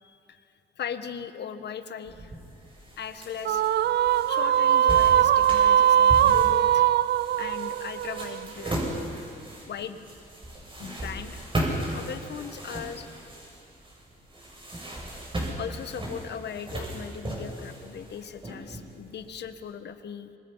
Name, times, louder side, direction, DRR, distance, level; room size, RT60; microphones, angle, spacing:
voice 1, 0.0-0.5 0.8-2.3 3.0-3.6 4.3-6.9 7.4-8.8 9.6-10.0 10.8-11.4 11.8-13.1 15.6-20.3, left 7 dB, 60° left, 9 dB, 1.6 m, -38 dB
Walking terrace, 2.1-19.5, right 1 dB, 25° right, 7.3 m, -36 dB
sound 1, 3.4-8.9, right 10 dB, 55° right, 0.5 m, -21 dB
27.5 x 25.0 x 5.8 m, 2.4 s
cardioid pair, 90°, 20 cm